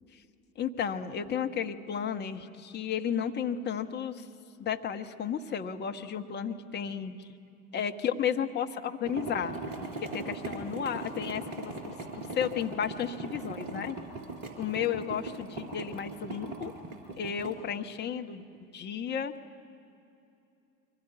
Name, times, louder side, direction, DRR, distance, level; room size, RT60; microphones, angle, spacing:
voice 1, 0.6-4.3 4.6-7.2 7.7-9.6 10.0-11.7 12.3-14.0 14.6-16.7 17.2-18.4 18.7-19.3, left 8 dB, 25° left, 6 dB, 1.3 m, -33 dB
sound 1, 9.0-17.5, right 2 dB, 45° right, 4.3 m, -39 dB
24.0 x 18.0 x 9.2 m, 2.7 s
figure-of-eight pair, 80°, 43 cm